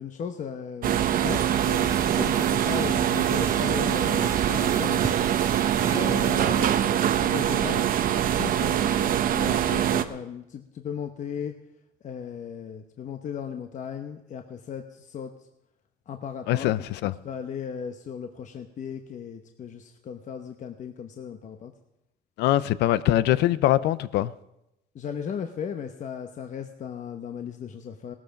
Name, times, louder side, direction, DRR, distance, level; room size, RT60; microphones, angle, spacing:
voice 1, 0.0-5.2 5.9-7.9 8.4-11.6 12.0-15.5 16.1-16.7 17.0-21.7 24.9-28.1, left 7 dB, 45° left, 1.0 m, -36 dB
sound 1, 0.8-10.0, right 10 dB, 55° right, 0.9 m, -23 dB
sound 2, 1.3-6.6, right 3 dB, 20° right, 1.0 m, -37 dB
voice 2, 16.5-17.1 22.4-24.3, left 14 dB, 85° left, 0.6 m, -23 dB
17.0 x 12.5 x 5.2 m
cardioid pair, 110°, 17 cm